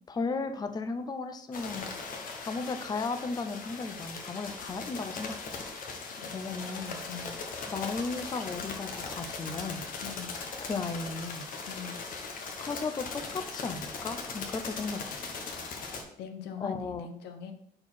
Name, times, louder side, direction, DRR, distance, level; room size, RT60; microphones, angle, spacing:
voice 1, 0.1-2.1 2.4-5.3 6.3-7.0 7.7-9.8 10.6-11.5 12.6-15.5 16.6-17.1, left 4 dB, 25° left, 9 dB, 0.6 m, -35 dB
sound 1, 1.5-16.0, left 4 dB, 55° left, 1.2 m, -39 dB
voice 2, 6.2-7.4 10.0-10.3 11.7-12.0 16.2-17.5, left 7 dB, 85° left, 7 dB, 0.9 m, -42 dB
4.5 x 4.4 x 5.7 m, 0.69 s
cardioid pair, 110°, 17 cm